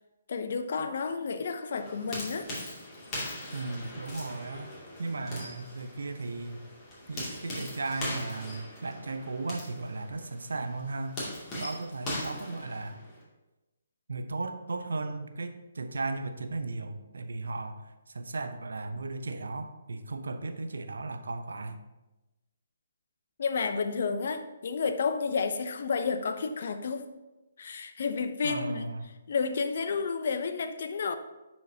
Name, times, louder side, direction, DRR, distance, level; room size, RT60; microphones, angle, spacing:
voice 1, 0.3-2.5 23.4-27.1 27.6-28.9 29.3-31.2, left 5 dB, 55° left, 9 dB, 0.6 m, -31 dB
sound 1, 1.7-13.2, left 1 dB, 25° left, 2.3 m, -40 dB
voice 2, 3.5-4.7 5.0-6.6 7.1-11.2 11.6-13.0 14.1-21.8 28.4-29.1, right 3 dB, 75° right, 8 dB, 0.6 m, -36 dB
10.0 x 4.4 x 2.8 m, 1.0 s
figure-of-eight pair, 140°, 0 cm